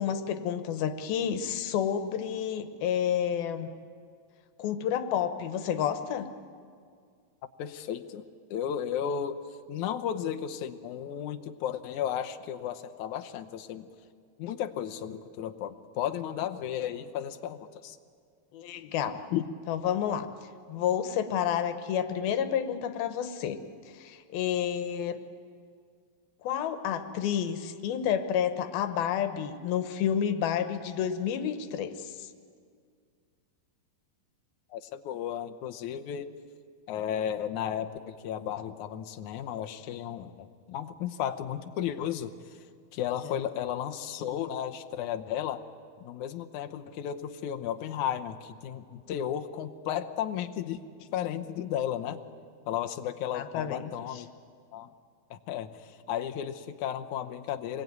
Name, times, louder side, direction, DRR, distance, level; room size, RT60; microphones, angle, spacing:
voice 1, 0.0-3.7 4.6-6.3 18.5-19.2 19.7-20.3 20.7-23.6 23.9-25.2 26.4-32.3 43.2-43.4 53.3-53.8, left 9 dB, 85° left, 9 dB, 3.0 m, -30 dB
voice 2, 7.6-9.4 9.7-13.9 14.4-18.0 19.3-19.5 34.7-36.3 36.9-42.6 42.9-45.6 46.0-52.2 52.7-54.3 54.7-54.9 55.3-57.8, left 9 dB, 70° left, 7 dB, 2.0 m, -34 dB
26.5 x 21.0 x 9.4 m, 2.1 s
omnidirectional pair, 4.2 m